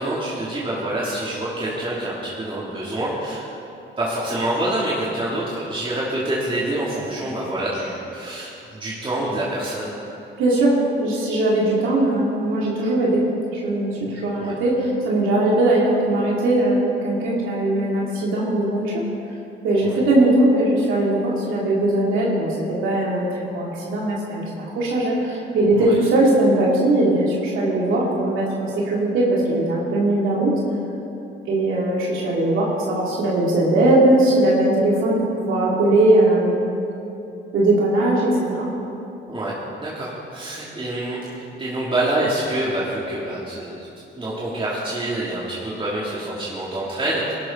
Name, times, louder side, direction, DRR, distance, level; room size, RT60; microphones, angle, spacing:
voice 1, 0.0-3.4 4.0-9.9 14.4-14.5 19.8-20.0 25.7-26.0 39.3-41.3 41.6-43.9 44.2-47.3, right 1 dB, 25° right, -7 dB, 2.9 m, -26 dB
voice 2, 10.4-13.2 13.5-19.0 19.6-30.5 31.5-36.6 37.5-38.7, right 1 dB, 85° right, -5 dB, 2.8 m, -20 dB
20.0 x 12.0 x 4.0 m, 2.9 s
cardioid pair, 90°, 20 cm